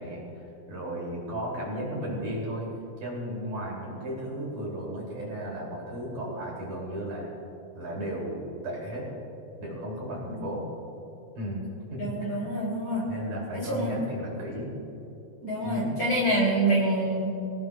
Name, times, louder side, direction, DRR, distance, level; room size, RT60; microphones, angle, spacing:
voice 1, 0.0-2.7 3.0-7.3 7.7-9.1 9.6-10.6 11.4-12.5 13.1-14.8 15.6-15.9, equal, 45° right, -4 dB, 3.7 m, -35 dB
voice 2, 12.0-13.1 13.5-14.0 15.4-17.3, right 1 dB, 35° left, -5 dB, 3.2 m, -26 dB
25.0 x 18.0 x 2.4 m, 2.9 s
omnidirectional pair, 6.0 m